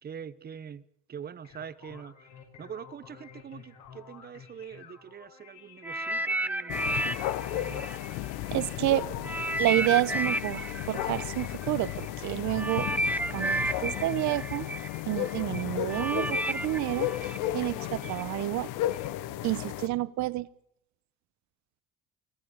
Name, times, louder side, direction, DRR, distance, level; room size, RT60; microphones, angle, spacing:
voice 1, 0.0-2.3 2.6-6.8 7.5-7.9 9.0-9.3 9.8-10.0, right 7 dB, 30° right, 1.1 m, -44 dB
sound 1, 1.2-6.4, left 7 dB, 60° left, 6.2 m, -52 dB
sound 2, 5.8-8.8 9.2-18.2 18.9-19.1, right 1 dB, 5° right, 0.8 m, -32 dB
sound 3, 6.7-19.9, left 14 dB, 80° left, 1.2 m, -34 dB
voice 2, 8.5-9.0 9.6-12.9 13.3-14.7 15.1-17.1 17.5-18.7 19.4-20.5, right 17 dB, 60° right, 1.0 m, -29 dB
26.0 x 15.0 x 8.9 m
cardioid pair, 125°, 31 cm